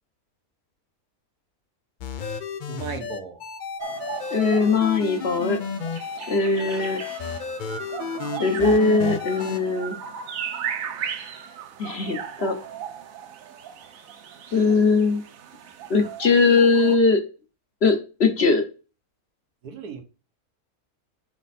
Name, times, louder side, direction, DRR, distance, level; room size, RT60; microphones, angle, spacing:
sound 1, 2.0-9.6, left 5 dB, 75° left, 0.4 m, -32 dB
voice 1, 2.7-3.4 4.2-4.4 19.6-20.0, right 6 dB, 85° right, 5 dB, 1.6 m, -36 dB
sound 2, 3.8-17.0, right 8 dB, 70° right, 1.2 m, -36 dB
voice 2, 4.3-5.6 6.3-7.0 8.4-10.0 11.8-12.6 14.5-15.2 15.9-17.2 17.8-18.6, left 4 dB, 50° left, 6 dB, 1.0 m, -20 dB
5.8 x 5.1 x 4.2 m, 0.33 s
omnidirectional pair, 1.6 m